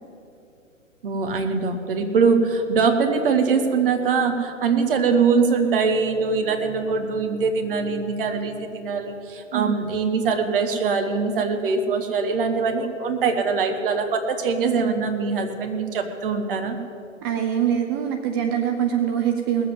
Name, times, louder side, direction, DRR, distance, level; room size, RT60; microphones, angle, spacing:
voice 1, 1.0-16.8, right 5 dB, 45° right, 6 dB, 1.6 m, -22 dB
voice 2, 17.2-19.7, right 9 dB, 20° right, 4 dB, 0.5 m, -23 dB
19.0 x 7.7 x 7.9 m, 2.8 s
figure-of-eight pair, 120°, 38 cm